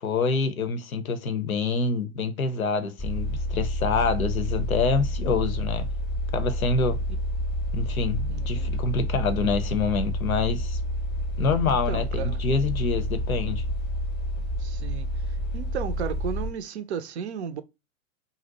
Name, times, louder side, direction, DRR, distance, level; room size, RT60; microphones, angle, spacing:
voice 1, 0.0-5.9 6.3-7.0 7.7-10.8 11.4-13.6, left 4 dB, 80° left, 0.6 m, -26 dB
sound 1, 3.0-16.5, equal, 10° left, 0.7 m, -29 dB
voice 2, 8.3-8.7 11.6-12.4 14.6-15.1 15.5-17.6, right 7 dB, 55° right, 0.5 m, -34 dB
2.6 x 2.0 x 3.9 m
figure-of-eight pair, 100°, 41 cm